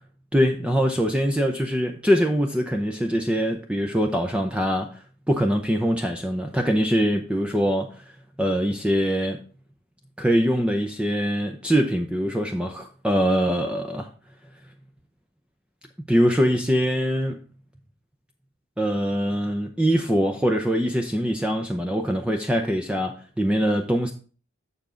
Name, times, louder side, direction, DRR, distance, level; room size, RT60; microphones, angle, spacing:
voice 1, 0.3-5.0 5.3-8.0 8.4-9.4 10.2-14.1 16.1-17.4 18.8-24.1, equal, 5° right, 0.6 m, -23 dB
7.0 x 7.0 x 3.8 m
head